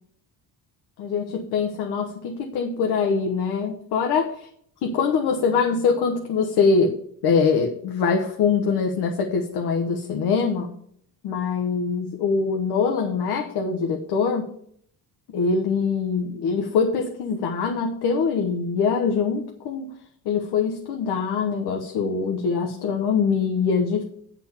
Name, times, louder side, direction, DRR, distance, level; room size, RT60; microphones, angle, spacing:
voice 1, 1.0-4.3 4.8-10.7 11.2-14.5 15.3-19.9 20.2-24.0, left 5 dB, 80° left, 2 dB, 1.2 m, -23 dB
9.7 x 4.5 x 7.0 m, 0.65 s
cardioid pair, 150°, 39 cm